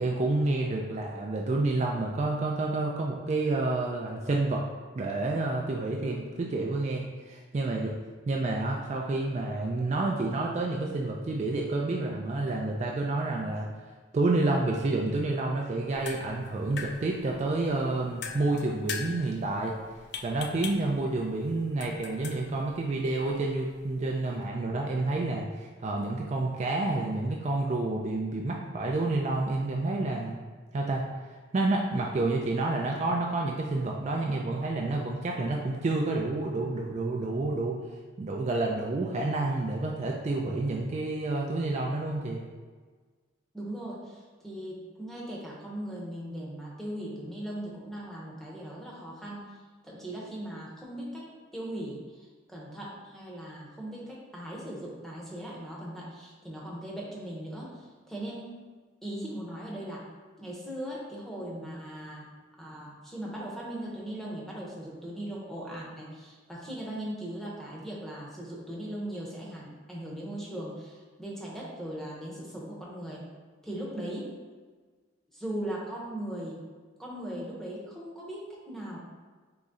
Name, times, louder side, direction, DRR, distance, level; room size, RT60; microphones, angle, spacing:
voice 1, 0.0-4.6 4.9-7.9 8.3-13.7 14.1-19.8 20.2-30.4 30.7-31.1 31.5-37.8 38.2-42.4, right 2 dB, 35° right, -1 dB, 0.3 m, -29 dB
sound 1, 15.8-24.4, left 6 dB, 60° left, 0.4 m, -43 dB
voice 2, 43.5-49.5 49.8-51.2 51.5-52.0 52.5-58.5 59.0-60.0 60.4-62.2 62.6-73.3 73.6-74.3 75.3-76.6 77.0-79.0, right 1 dB, ahead, -5 dB, 0.8 m, -39 dB
3.9 x 3.1 x 3.6 m, 1.4 s
head